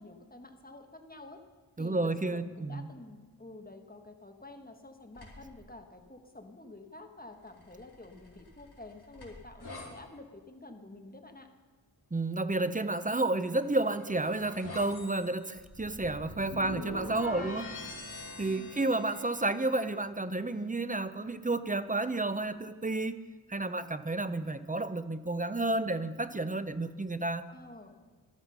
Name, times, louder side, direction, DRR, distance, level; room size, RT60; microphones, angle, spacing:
voice 1, 0.0-1.4 1.8-11.5 16.5-17.7 18.4-18.7 27.5-28.0, left 2 dB, 20° left, 5 dB, 1.4 m, -49 dB
voice 2, 1.8-2.9 12.1-17.7 18.4-23.2 23.5-27.4, right 2 dB, 20° right, 12 dB, 0.6 m, -31 dB
sound 1, 5.1-5.6 7.5-9.9 13.4-19.8, left 2 dB, 65° left, 4.6 m, -45 dB
13.5 x 13.0 x 5.5 m, 1.4 s
wide cardioid pair, 60°, 42 cm